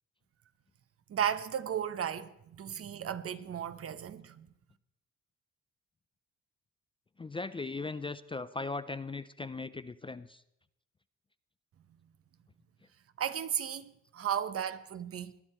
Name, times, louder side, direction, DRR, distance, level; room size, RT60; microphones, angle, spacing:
voice 1, 1.1-4.5 13.2-15.3, right 9 dB, 50° right, 0.9 m, -35 dB
voice 2, 7.2-10.4 14.3-14.4, left 3 dB, 15° left, 0.4 m, -38 dB
19.5 x 11.0 x 4.4 m
cardioid pair, 90°, 30 cm